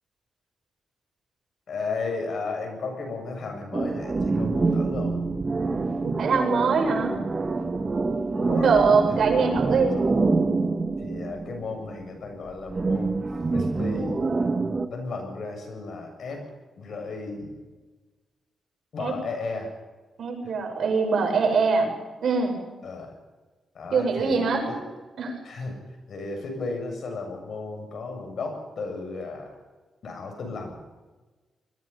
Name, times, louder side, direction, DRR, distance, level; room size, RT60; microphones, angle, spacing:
voice 1, 1.7-5.1 8.4-9.6 11.0-13.2 13.5-14.2 14.9-16.4 16.8-17.5 18.9-19.7 20.4-20.5 22.8-23.1 23.7-24.8 25.4-25.8 26.1-29.5 30.0-30.8, left 3 dB, 60° left, 4 dB, 7.4 m, -34 dB
sound 1, 3.7-11.9 12.7-14.9, right 3 dB, 30° right, 1.7 m, -26 dB
voice 2, 6.0-7.2 8.5-10.0 19.0-19.1 20.2-21.9 22.2-22.6 23.9-24.6 25.2-25.3, right 5 dB, 65° right, 3 dB, 6.6 m, -23 dB
25.5 x 21.5 x 5.6 m, 1.3 s
wide cardioid pair, 120°, 0 cm